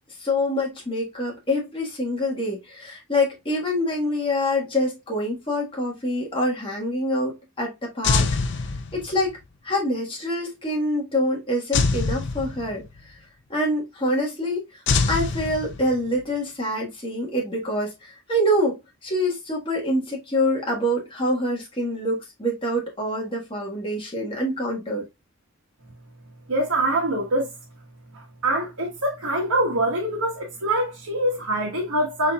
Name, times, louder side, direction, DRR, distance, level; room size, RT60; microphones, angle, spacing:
voice 1, 0.2-8.3 8.9-9.4 9.6-12.8 13.5-14.6 15.1-25.0, left 1 dB, 25° left, 1.6 m, -25 dB
sound 1, 8.0-9.3 11.7-13.0 14.9-16.2, left 4 dB, 50° left, 0.5 m, -24 dB
voice 2, 26.5-27.5 28.1-32.3, right 1 dB, 90° right, 1.4 m, -24 dB
5.5 x 4.0 x 2.3 m
head